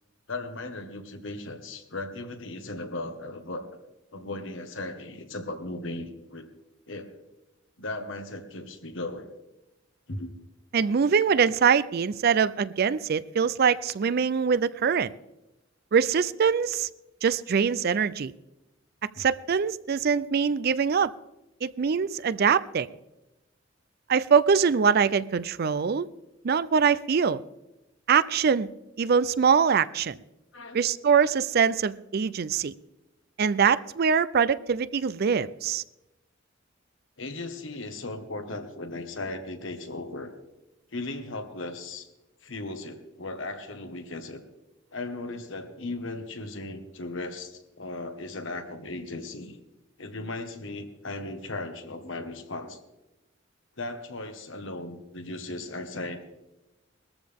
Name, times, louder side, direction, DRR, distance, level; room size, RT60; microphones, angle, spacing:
voice 1, 0.3-3.6 4.1-6.5 6.9-7.2 7.8-9.3 10.1-10.3 30.5-30.9 37.2-40.3 40.9-42.1 42.4-44.4 44.9-49.6 50.0-52.8 53.8-56.2, left 2 dB, 80° left, 6 dB, 1.6 m, -37 dB
voice 2, 10.7-15.1 15.9-16.9 17.2-18.3 19.2-21.1 21.6-22.9 24.1-26.1 26.4-27.4 28.1-28.7 29.0-30.2 30.7-32.7 33.4-35.8, right 6 dB, 50° right, 16 dB, 0.4 m, -23 dB
20.5 x 14.0 x 3.6 m, 1.0 s
head